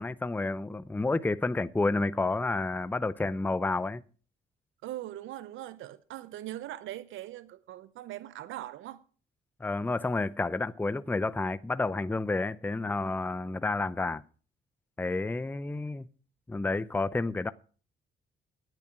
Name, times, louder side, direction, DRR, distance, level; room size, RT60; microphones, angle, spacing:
voice 1, 0.0-4.0 9.6-14.2 15.0-16.1 16.5-17.5, left 3 dB, 10° left, 0.5 m, -30 dB
voice 2, 4.8-9.0, right 14 dB, 85° right, 0.7 m, -41 dB
10.5 x 9.8 x 6.0 m
cardioid pair, 90°, 20 cm